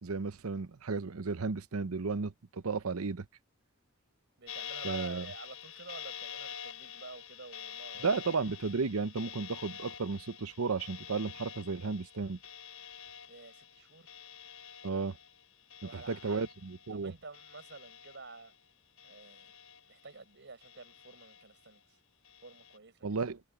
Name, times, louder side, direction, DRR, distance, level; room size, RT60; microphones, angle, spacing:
voice 1, 0.0-3.3 4.8-5.3 8.0-12.4 14.8-15.2 15.9-17.1 23.0-23.4, right 4 dB, 90° right, 0.8 m, -34 dB
voice 2, 4.4-8.1 13.3-14.1 15.8-16.4 16.9-18.5 19.0-19.5 19.9-22.0 22.4-23.2, right 3 dB, 55° right, 5.5 m, -50 dB
sound 1, 4.5-17.0 17.3-18.6 19.0-20.2 20.6-21.7 22.2-22.8, left 8 dB, 80° left, 4.5 m, -47 dB
head